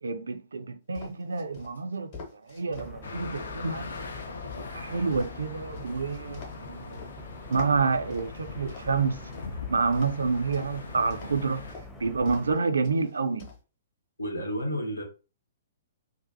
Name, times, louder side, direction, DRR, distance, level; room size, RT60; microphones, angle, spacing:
voice 1, 0.0-4.0 4.4-7.0 7.5-9.2 9.7-11.6 12.0-13.5, right 4 dB, 70° right, 0.3 m, -28 dB
sound 1, 0.9-2.9 3.3-7.1 7.5-9.5 9.9-10.8 11.1-11.4 11.7-11.9 12.3-12.6 12.8-13.6, left 4 dB, 40° left, 0.9 m, -45 dB
Quebrada La Vieja - Murmullo desde terreno escarpado, 2.7-12.6, left 1 dB, 5° left, 0.5 m, -45 dB
sound 2, 3.0-11.7, left 4 dB, 65° left, 0.4 m, -42 dB
voice 2, 14.2-15.0, equal, 80° left, 0.8 m, -31 dB
2.5 x 2.1 x 2.5 m
figure-of-eight pair, 115°, 0 cm